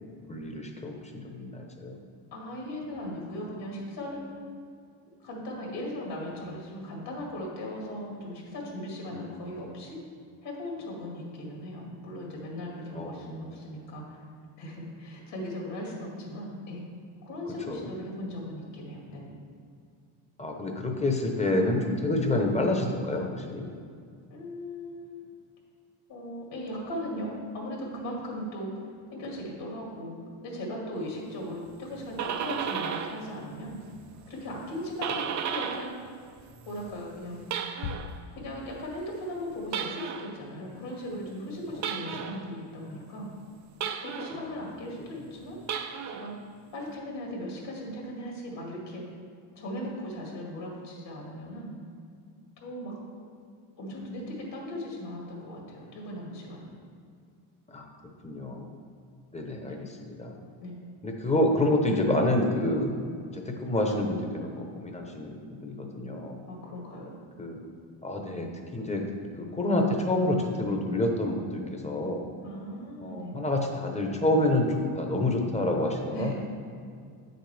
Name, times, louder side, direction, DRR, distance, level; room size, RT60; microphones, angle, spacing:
voice 1, 0.3-2.0 9.1-9.3 12.9-13.1 17.7-17.8 20.4-23.7 57.7-57.9 58.2-58.7 59.3-59.9 60.2-60.4 61.0-62.9 63.3-64.5 64.8-66.4 67.4-67.6 68.0-68.5 68.7-69.0 69.4-72.2 73.0-76.3, left 1 dB, 15° left, 2 dB, 0.9 m, -28 dB
voice 2, 2.3-4.2 5.2-10.0 10.4-14.2 14.6-16.8 17.2-19.3 24.3-25.3 26.1-28.8 29.1-30.2 30.4-33.8 34.3-35.9 36.6-37.5 38.3-43.3 44.0-45.6 46.1-46.4 46.7-49.1 49.5-51.7 52.6-53.0 53.8-56.7 59.6-59.8 60.6-60.7 66.5-67.1 72.4-73.4 76.1-76.3, left 1 dB, 60° left, -2 dB, 2.1 m, -38 dB
sound 1, 31.9-33.3 33.6-36.0 36.3-38.2 39.7-40.4 41.8-42.5 43.8-44.5 45.6-46.3, right 7 dB, 40° right, 0.4 m, -34 dB
sound 2, 37.8-39.2, left 7 dB, 85° left, 0.6 m, -40 dB
8.8 x 6.6 x 3.4 m, 2.3 s
cardioid pair, 120°, 49 cm